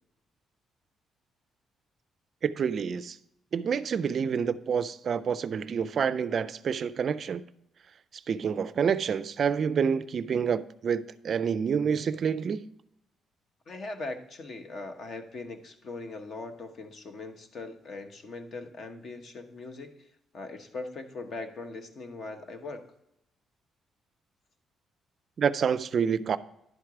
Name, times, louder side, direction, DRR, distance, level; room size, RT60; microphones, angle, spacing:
voice 1, 2.4-3.2 3.5-7.4 8.3-12.7 25.4-26.4, right 7 dB, 50° right, 0.3 m, -28 dB
voice 2, 13.7-20.1 20.3-22.8, left 3 dB, 50° left, 1.1 m, -40 dB
11.0 x 4.5 x 4.7 m
cardioid pair, 115°, 0 cm